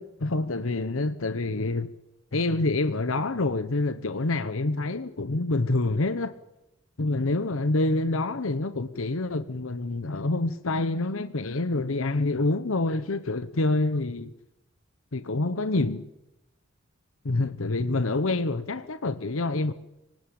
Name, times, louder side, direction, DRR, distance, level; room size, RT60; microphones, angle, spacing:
voice 1, 0.0-1.9 2.3-6.3 7.0-14.3 15.1-16.1 17.2-19.7, left 2 dB, 75° left, 1.0 m, -27 dB
25.0 x 18.5 x 8.7 m
head